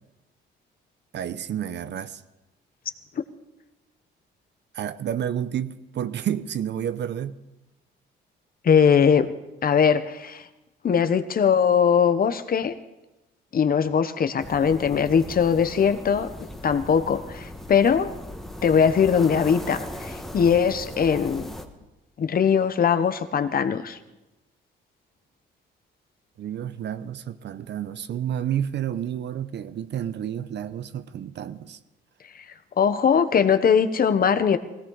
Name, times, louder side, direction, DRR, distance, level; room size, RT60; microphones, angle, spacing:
voice 1, 1.1-2.2 4.7-7.4 26.4-31.8, right 10 dB, 60° right, 0.8 m, -30 dB
voice 2, 8.6-9.3 9.6-10.5 10.8-12.7 13.5-16.3 16.6-18.1 18.6-21.5 22.2-24.0 32.3-32.4 32.8-34.6, left 7 dB, 45° left, 1.1 m, -21 dB
sound 1, 14.4-21.7, left 1 dB, ahead, 1.5 m, -38 dB
18.0 x 16.5 x 4.0 m
cardioid pair, 90°, 20 cm